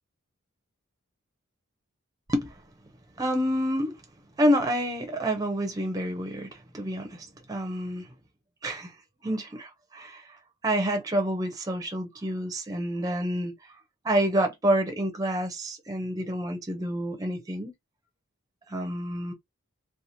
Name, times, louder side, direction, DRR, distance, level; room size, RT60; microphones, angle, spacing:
voice 1, 3.2-4.0 4.4-8.1 8.6-8.9 9.2-10.4 10.6-13.5 14.0-17.7 18.7-19.3, equal, 15° right, 0.5 m, -28 dB
2.7 x 2.3 x 2.6 m
head